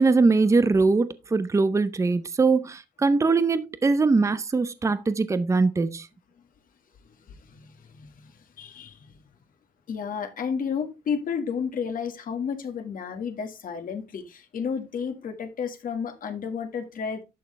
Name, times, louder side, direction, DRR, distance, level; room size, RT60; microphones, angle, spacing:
voice 1, 0.0-6.1, right 3 dB, 20° right, 0.6 m, -22 dB
voice 2, 7.3-9.2 9.9-17.2, left 6 dB, 60° left, 1.8 m, -32 dB
11.5 x 6.4 x 3.3 m
wide cardioid pair, 145°, 16 cm